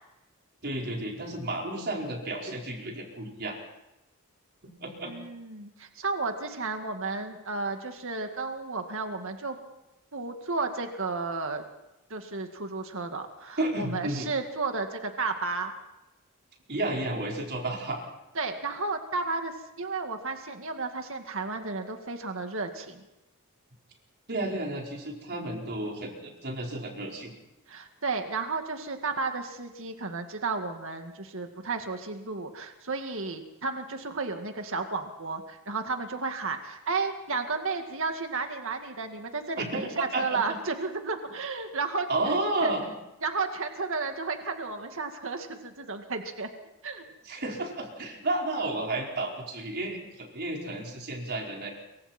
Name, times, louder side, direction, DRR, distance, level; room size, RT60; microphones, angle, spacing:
voice 1, 0.6-3.6 4.6-5.2 13.6-14.3 16.7-18.0 24.3-27.3 39.6-40.4 42.1-42.8 47.2-51.7, right 2 dB, 50° right, 0 dB, 4.8 m, -32 dB
voice 2, 5.0-9.6 10.1-11.6 12.1-15.7 18.4-19.5 19.8-23.0 27.7-42.1 42.6-42.7 43.2-46.5 46.8-47.0, right 4 dB, 65° right, 5 dB, 2.1 m, -33 dB
26.5 x 24.0 x 4.5 m, 0.95 s
head